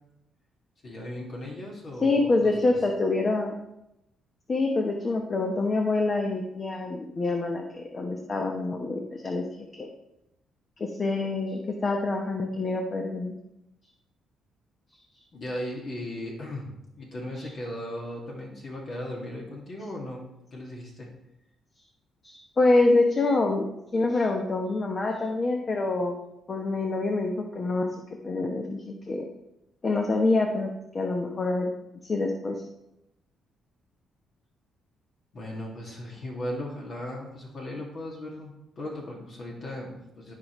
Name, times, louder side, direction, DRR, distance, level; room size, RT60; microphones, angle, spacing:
voice 1, 0.8-2.7 15.3-21.1 35.3-40.3, left 1 dB, 55° left, -3 dB, 2.3 m, -37 dB
voice 2, 2.0-3.5 4.5-9.9 10.8-13.3 17.4-17.5 22.2-26.2 26.5-27.9 28.2-29.2 29.8-31.7 32.0-32.5, left 2 dB, 35° left, 2 dB, 1.0 m, -26 dB
14.5 x 5.1 x 3.2 m, 0.87 s
cardioid pair, 90°, 0 cm